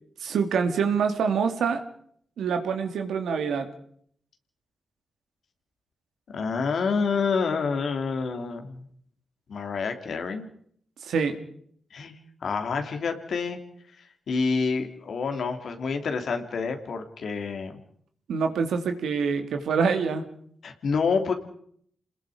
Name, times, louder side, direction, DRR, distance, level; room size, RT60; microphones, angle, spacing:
voice 1, 0.2-1.8 2.4-3.7 11.0-11.4 18.3-20.2, right 6 dB, 85° right, 6 dB, 2.5 m, -25 dB
voice 2, 6.3-8.8 9.5-10.5 11.9-12.2 12.4-13.6 14.0-17.8 20.6-21.3, left 5 dB, 75° left, 6 dB, 3.1 m, -28 dB
28.0 x 20.5 x 5.1 m, 0.63 s
cardioid pair, 50°, 0 cm